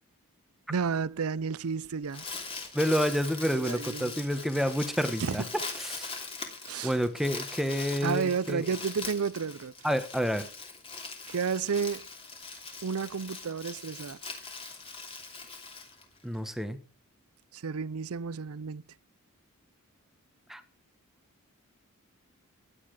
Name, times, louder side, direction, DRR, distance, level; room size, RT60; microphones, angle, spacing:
voice 1, 0.7-2.2 3.5-4.2 5.2-5.5 6.6-6.9 8.0-9.7 11.3-12.1 12.8-14.2 17.5-18.8, right 6 dB, 70° right, 0.5 m, -31 dB
Crumpling crinkling, 1.8-16.5, left 4 dB, 25° left, 2.9 m, -41 dB
voice 2, 2.7-5.4 5.8-6.2 6.8-8.6 9.8-10.5 16.2-16.8 20.5-20.6, equal, ahead, 1.3 m, -29 dB
16.0 x 10.0 x 4.9 m
head